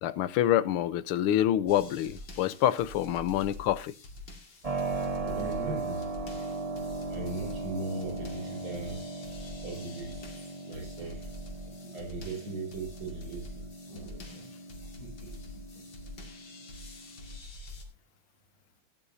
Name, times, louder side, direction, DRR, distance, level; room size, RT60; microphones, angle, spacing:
voice 1, 0.0-3.9, left 12 dB, 85° left, 1.7 m, -27 dB
sound 1, 1.7-17.9, left 1 dB, 60° left, 3.0 m, -46 dB
Keyboard (musical), 4.6-17.4, right 3 dB, 20° right, 1.3 m, -38 dB
voice 2, 5.2-6.1 7.1-9.0 9.6-10.2 10.6-11.3 11.6-14.5 14.8-15.8, right 3 dB, 75° right, 6.3 m, -39 dB
18.0 x 10.0 x 2.7 m
omnidirectional pair, 2.3 m